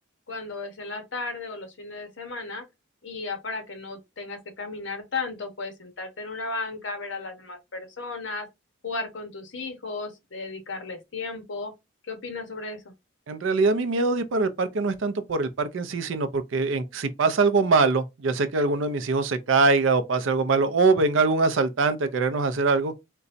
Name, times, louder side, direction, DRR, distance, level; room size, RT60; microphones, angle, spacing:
voice 1, 0.3-2.6 3.0-8.5 8.8-11.7 12.1-12.9, left 3 dB, 60° left, 0.9 m, -35 dB
voice 2, 13.3-22.9, right 3 dB, 70° right, 0.5 m, -23 dB
3.9 x 2.2 x 2.5 m
head